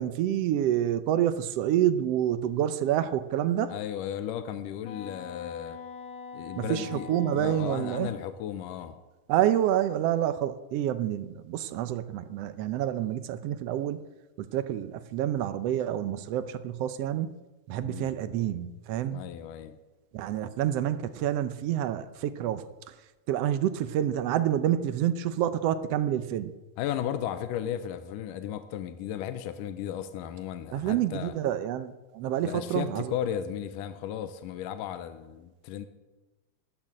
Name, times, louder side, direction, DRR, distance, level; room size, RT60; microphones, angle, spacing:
voice 1, 0.0-3.7 6.6-8.1 9.3-14.0 14.4-17.3 17.7-19.2 20.1-22.7 23.3-26.5 30.7-33.1, right 11 dB, 85° right, 11 dB, 1.4 m, -28 dB
voice 2, 3.7-5.8 6.3-9.0 17.8-18.1 19.1-19.8 26.8-31.3 32.4-35.9, left 10 dB, 85° left, 10 dB, 2.4 m, -35 dB
Wind instrument woodwind instrument, 4.8-8.3, left 5 dB, 60° left, 2.3 m, -43 dB
13.0 x 12.5 x 8.8 m, 1.1 s
omnidirectional pair, 3.8 m